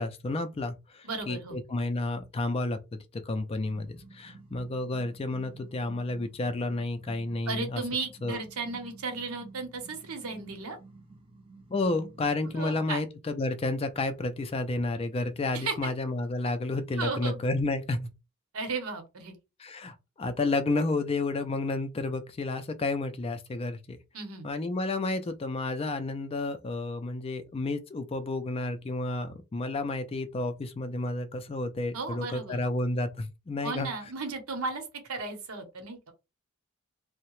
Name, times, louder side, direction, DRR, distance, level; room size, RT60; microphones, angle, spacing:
voice 1, 0.0-2.8 3.1-7.8 8.2-8.4 11.7-18.1 19.6-24.0 24.4-33.9, left 2 dB, 25° left, 0.3 m, -31 dB
voice 2, 1.0-1.6 7.5-10.8 12.5-13.0 15.5-15.7 17.0-17.4 18.5-19.4 24.1-24.5 31.9-32.6 33.6-36.1, right 4 dB, 90° right, 0.8 m, -35 dB
sound 1, 3.5-12.9, right 3 dB, 25° right, 0.6 m, -52 dB
2.8 x 2.1 x 3.0 m
head